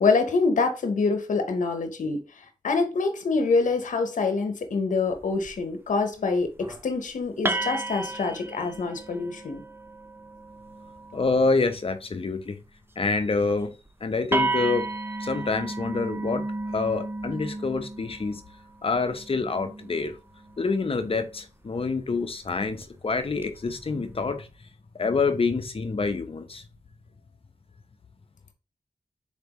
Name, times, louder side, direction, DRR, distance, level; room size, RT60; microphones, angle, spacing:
voice 1, 0.0-9.6, left 4 dB, 75° left, 0.8 m, -26 dB
sound 1, 5.1-5.6 6.4-6.8 7.5-11.8 13.4-13.6 13.9-14.0 14.3-21.4 22.6-22.8 23.4-23.9, right 2 dB, 15° right, 0.5 m, -33 dB
voice 2, 11.1-12.6 13.0-13.7 14.0-16.4 16.7-18.4 18.8-20.2 20.6-24.5 24.9-26.6, left 4 dB, 45° left, 0.7 m, -27 dB
4.4 x 3.4 x 3.0 m
cardioid pair, 45°, 13 cm